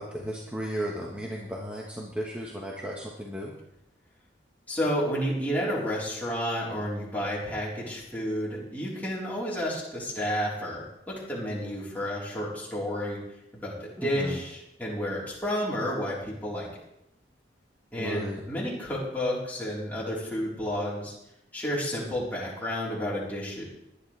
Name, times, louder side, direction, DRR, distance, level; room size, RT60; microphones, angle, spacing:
voice 1, 0.0-3.5 14.0-14.4 18.0-18.4, equal, 5° right, -3 dB, 1.3 m, -35 dB
voice 2, 4.7-13.2 13.5-16.7 17.9-21.1 21.5-23.6, equal, 10° left, -7 dB, 4.1 m, -31 dB
18.5 x 11.5 x 3.4 m, 0.83 s
head